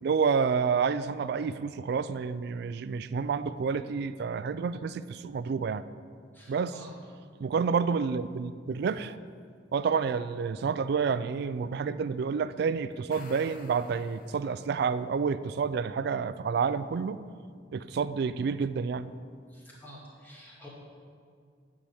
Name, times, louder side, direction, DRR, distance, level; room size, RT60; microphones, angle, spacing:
voice 1, 0.0-5.8 6.5-6.8 7.4-9.2 9.7-17.2 17.7-19.1, right 5 dB, 55° right, 14 dB, 0.3 m, -29 dB
voice 2, 6.3-6.9 19.5-20.7, equal, 10° left, -5 dB, 1.9 m, -49 dB
sound 1, 12.9-14.9, left 4 dB, 50° left, 0.7 m, -52 dB
8.9 x 4.8 x 7.0 m, 2.1 s
head